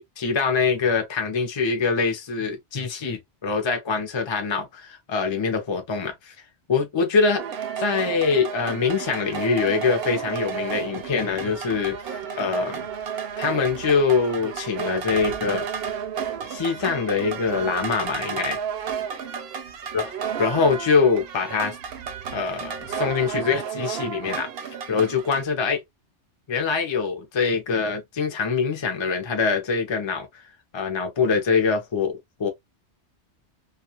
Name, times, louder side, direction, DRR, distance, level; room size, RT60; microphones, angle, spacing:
voice 1, 0.0-6.3 6.7-7.4 7.8-12.9 13.4-15.6 16.5-18.6 19.9-20.1 20.4-21.8 22.3-25.8 26.5-30.4 30.7-32.5, left 5 dB, 30° left, 0.5 m, -24 dB
sound 1, 7.4-25.4, right 7 dB, 65° right, 0.7 m, -32 dB
2.4 x 2.3 x 2.8 m
omnidirectional pair, 1.2 m